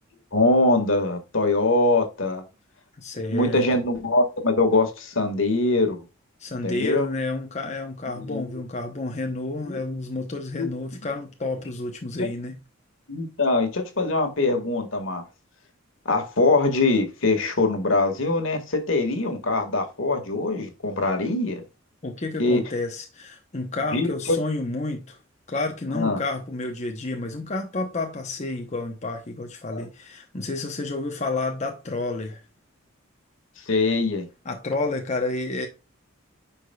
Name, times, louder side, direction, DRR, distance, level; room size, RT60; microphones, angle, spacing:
voice 1, 0.3-2.4 3.3-6.0 6.6-7.1 8.1-8.6 9.6-9.8 10.6-10.7 12.2-12.3 13.1-15.2 16.1-21.6 22.4-22.6 23.9-24.4 25.9-26.2 29.7-29.9 33.7-34.3, left 2 dB, 65° left, 1.9 m, -23 dB
voice 2, 3.0-3.6 6.4-12.6 22.0-25.2 25.5-32.4 34.4-35.7, left 2 dB, 35° left, 0.9 m, -30 dB
10.0 x 5.0 x 2.3 m
head